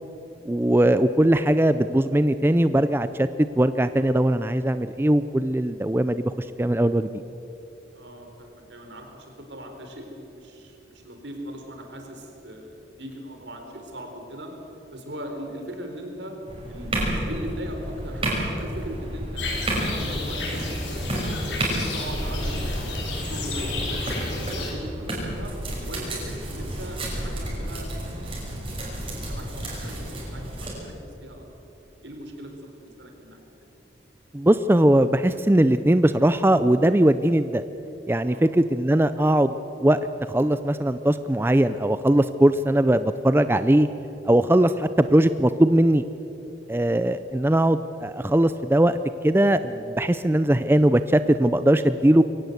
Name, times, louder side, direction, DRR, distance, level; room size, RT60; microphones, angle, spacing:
voice 1, 0.5-3.3 3.6-7.1 34.3-37.6 38.1-40.0 40.3-43.9 44.2-46.0 46.7-49.0 49.2-52.2, right 1 dB, 10° right, 12 dB, 0.4 m, -20 dB
voice 2, 7.9-14.5 14.9-16.4 16.7-21.0 21.5-24.9 25.2-25.5 25.9-30.9 31.2-31.4 32.0-33.4 38.3-38.5, equal, 80° right, 3 dB, 3.9 m, -39 dB
sound 1, 16.5-30.7, right 1 dB, 30° right, 5.8 m, -31 dB
sound 2, 19.4-24.7, left 2 dB, 85° left, 5.0 m, -31 dB
23.0 x 17.5 x 8.0 m, 3.0 s
head